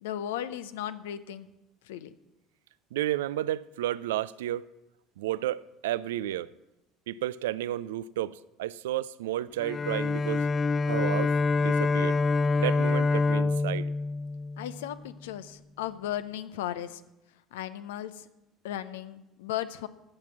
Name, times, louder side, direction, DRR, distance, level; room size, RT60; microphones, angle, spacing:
voice 1, 0.0-1.5 1.9-2.1 14.6-17.0 17.5-18.2 18.6-19.9, left 11 dB, 75° left, 0.6 m, -36 dB
voice 2, 2.9-4.6 5.2-6.5 7.1-10.5 10.9-11.3 11.6-12.2 12.6-13.9, right 13 dB, 75° right, 0.3 m, -32 dB
Bowed string instrument, 9.6-15.0, left 3 dB, 30° left, 0.3 m, -26 dB
15.5 x 5.9 x 7.1 m
hypercardioid pair, 65°, 0 cm